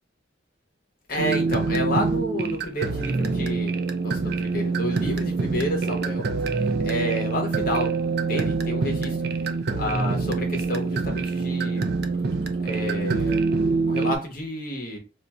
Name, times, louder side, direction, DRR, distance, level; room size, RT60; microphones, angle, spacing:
voice 1, 1.1-3.7 4.0-6.3 6.6-9.3 9.8-11.8 12.6-13.4 13.9-15.0, equal, 50° left, 0.9 m, -30 dB
sound 1, 1.2-14.2, right 4 dB, 55° right, 0.4 m, -25 dB
2.5 x 2.3 x 4.0 m
head